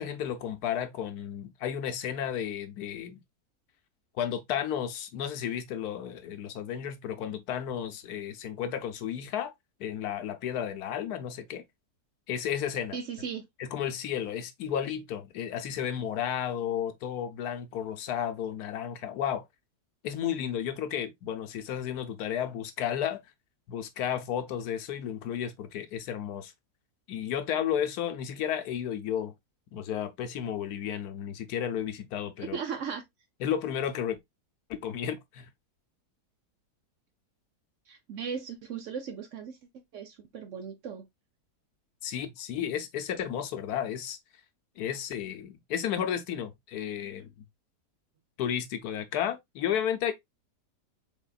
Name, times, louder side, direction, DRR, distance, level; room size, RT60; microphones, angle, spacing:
voice 1, 0.0-3.2 4.2-9.5 9.8-11.6 12.3-13.0 13.6-19.4 20.0-23.2 23.7-26.5 27.1-29.3 29.7-32.6 33.4-34.2 34.7-35.5 42.0-44.2 44.8-47.4 48.4-50.1, left 9 dB, 70° left, 1.1 m, -33 dB
voice 2, 12.9-13.5 32.4-33.0 37.9-39.6 39.9-41.0, right 6 dB, 65° right, 0.8 m, -37 dB
4.2 x 3.5 x 2.2 m
omnidirectional pair, 1.8 m